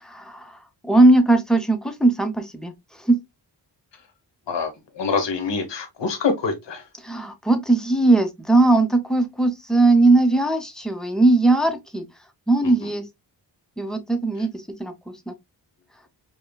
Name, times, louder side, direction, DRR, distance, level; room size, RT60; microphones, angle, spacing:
voice 1, 0.0-0.6 0.8-2.7 3.0-3.2 7.0-12.1 12.5-13.0 13.8-15.3, right 2 dB, ahead, 0.8 m, -19 dB
voice 2, 5.0-6.8, left 5 dB, 70° left, 1.2 m, -25 dB
5.4 x 2.3 x 2.2 m
wide cardioid pair, 85°, 44 cm